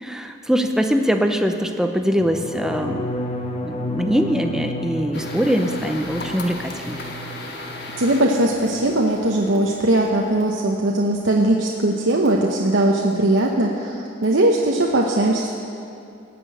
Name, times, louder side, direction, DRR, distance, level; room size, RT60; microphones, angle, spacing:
voice 1, 0.0-3.1 3.6-7.0, equal, 5° right, 5 dB, 0.6 m, -22 dB
sound 1, 2.2-8.1 8.4-8.9 9.2-9.6, left 1 dB, 30° left, 0.9 m, -32 dB
sound 2, 5.1-10.4, left 2 dB, 55° left, 1.4 m, -36 dB
voice 2, 8.0-15.5, right 1 dB, 70° right, -1 dB, 0.9 m, -19 dB
17.0 x 6.1 x 9.2 m, 2.6 s
head